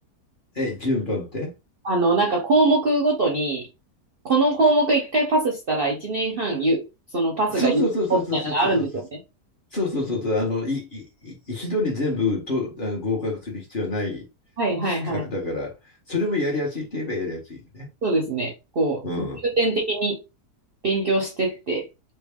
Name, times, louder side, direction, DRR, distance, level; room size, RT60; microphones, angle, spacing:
voice 1, 0.5-1.5 7.5-8.9 9.7-14.3 14.8-15.7 16.1-17.9 19.0-19.4, left 2 dB, 35° left, 1.1 m, -27 dB
voice 2, 1.8-3.7 4.3-6.8 7.1-7.8 8.1-9.2 14.6-15.2 18.0-19.2 19.6-20.2 20.8-21.9, right 2 dB, 50° right, 0.7 m, -22 dB
3.3 x 2.4 x 3.5 m
omnidirectional pair, 1.7 m